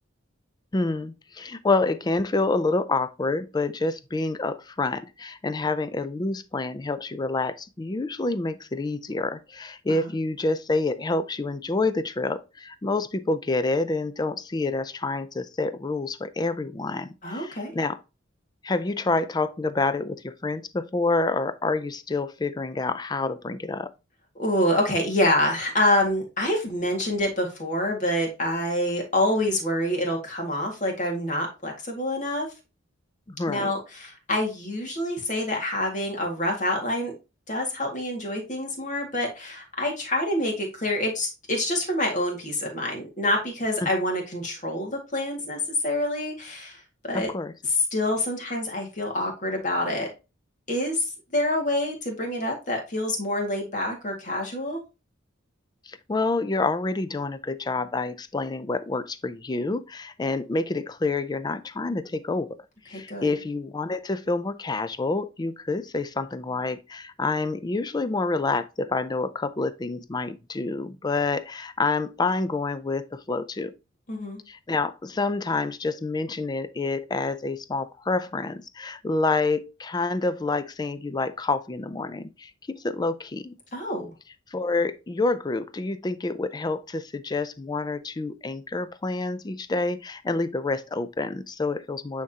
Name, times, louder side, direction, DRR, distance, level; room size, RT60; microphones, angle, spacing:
voice 1, 0.7-18.0 18.6-23.9 33.3-33.7 43.8-43.9 47.1-47.5 55.9-62.6 62.9-73.7 74.5-83.5 84.5-92.2, left 3 dB, 20° left, 0.4 m, -28 dB
voice 2, 17.2-17.7 24.4-32.5 33.5-37.1 37.5-47.3 47.9-50.1 50.7-54.8 63.1-63.3 74.1-74.4 83.7-84.1, left 1 dB, 40° left, 1.9 m, -27 dB
9.2 x 3.6 x 2.8 m
head